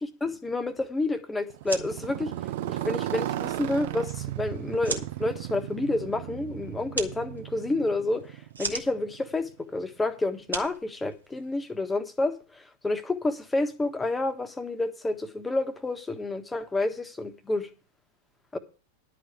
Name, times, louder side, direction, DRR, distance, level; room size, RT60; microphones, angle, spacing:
voice 1, 0.2-2.3 2.7-8.3 8.6-17.7 18.5-18.6, left 2 dB, 10° left, 1.4 m, -29 dB
Motorcycle, 1.5-9.5, right 13 dB, 50° right, 0.7 m, -35 dB
sound 1, 1.5-11.7, right 4 dB, 75° right, 1.6 m, -40 dB
11.5 x 5.0 x 8.3 m
figure-of-eight pair, 90°, 0 cm